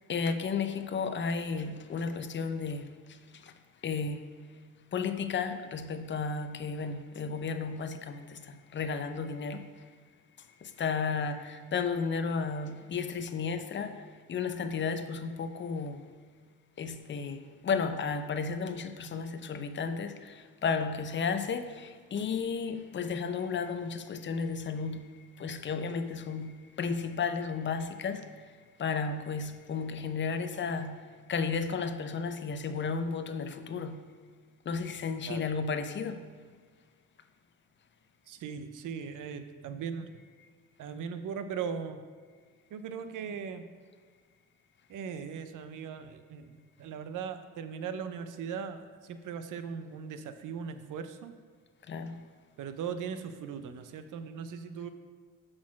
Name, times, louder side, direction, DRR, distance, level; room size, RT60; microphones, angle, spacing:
voice 1, 0.1-3.0 3.3-3.5 3.8-4.3 4.9-9.7 10.6-14.0 14.3-16.0 16.8-25.1 25.4-28.3 28.8-34.1 34.7-36.2 51.9-52.2, left 5 dB, 35° left, 0.6 m, -33 dB
voice 2, 38.3-40.1 40.8-42.0 42.7-43.7 44.9-51.4 52.6-54.9, right 6 dB, 65° right, 0.6 m, -39 dB
6.2 x 4.2 x 5.9 m
cardioid pair, 80°, 34 cm